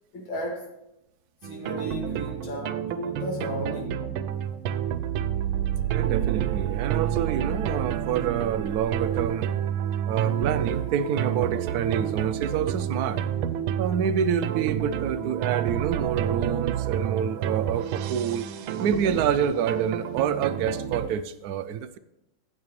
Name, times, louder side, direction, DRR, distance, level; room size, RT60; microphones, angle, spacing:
voice 1, 0.1-0.7 1.4-4.0 10.9-11.0, equal, 70° left, 3.0 m, -34 dB
sound 1, 1.4-21.1, right 10 dB, 90° right, 1.5 m, -29 dB
voice 2, 5.9-9.5 10.1-13.2 13.8-18.5 18.8-22.0, right 8 dB, 70° right, 0.9 m, -27 dB
16.5 x 6.8 x 3.2 m
omnidirectional pair, 2.2 m